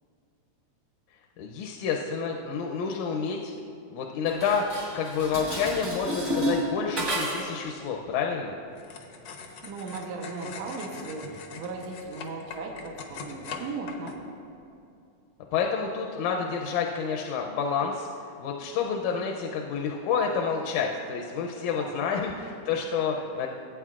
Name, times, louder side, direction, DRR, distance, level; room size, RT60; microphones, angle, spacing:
voice 1, 1.4-3.5 3.9-8.6 15.5-18.1 18.4-23.5, left 6 dB, 85° left, 1 dB, 2.1 m, -29 dB
Dishes pots and pans, 4.3-7.6, right 1 dB, 35° right, 1.3 m, -31 dB
sound 1, 8.7-14.1, left 5 dB, 65° left, 1.2 m, -42 dB
voice 2, 9.6-14.2 21.8-22.1, right 3 dB, 70° right, -1 dB, 2.1 m, -37 dB
18.0 x 8.8 x 2.4 m, 2.6 s
omnidirectional pair, 3.3 m